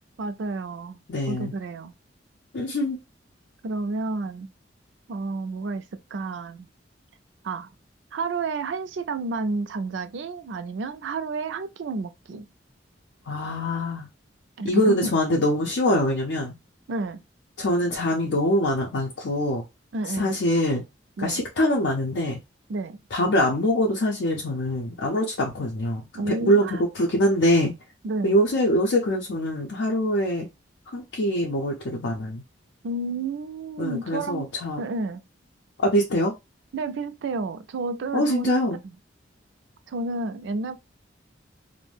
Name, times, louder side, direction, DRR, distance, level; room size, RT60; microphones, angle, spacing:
voice 1, 0.2-1.0 1.3-1.9 3.6-4.5 5.1-6.7 7.4-7.7 8.1-12.5 14.6-15.1 16.9-17.2 19.9-20.3 21.2-21.4 22.7-23.0 26.1-26.8 28.0-28.4 32.8-34.5 34.8-35.2 36.7-38.6 39.9-40.8, right 3 dB, 80° right, 0.4 m, -30 dB
voice 2, 1.1-1.5 2.5-3.0 13.3-14.1 14.6-16.5 17.6-19.6 20.1-20.8 21.2-22.4 23.1-27.7 28.2-30.5 30.9-32.4 33.8-34.8 35.8-36.3 38.1-38.8, equal, 90° left, 0.6 m, -24 dB
2.5 x 2.1 x 3.2 m
head